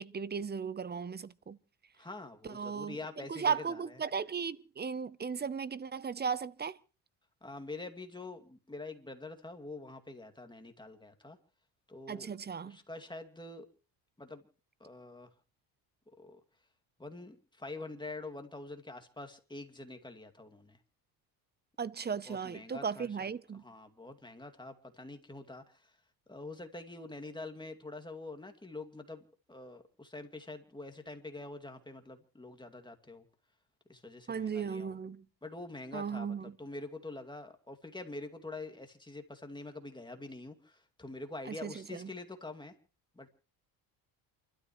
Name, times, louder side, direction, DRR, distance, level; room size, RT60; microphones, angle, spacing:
voice 1, 0.0-1.6 2.4-3.0 3.3-6.8 12.1-12.8 21.8-23.6 34.3-35.2 35.9-36.5 41.5-42.1, right 6 dB, 20° right, 0.7 m, -36 dB
voice 2, 2.0-4.0 7.4-11.4 11.9-12.3 12.6-13.7 14.2-14.4 14.8-15.3 16.2-16.4 17.0-20.8 22.3-23.3 23.6-25.9 26.3-29.2 29.5-33.2 33.9-35.0 35.4-42.7 43.2-43.3, left 2 dB, 10° left, 2.4 m, -45 dB
28.5 x 13.0 x 3.1 m
supercardioid pair, 90°, 44 cm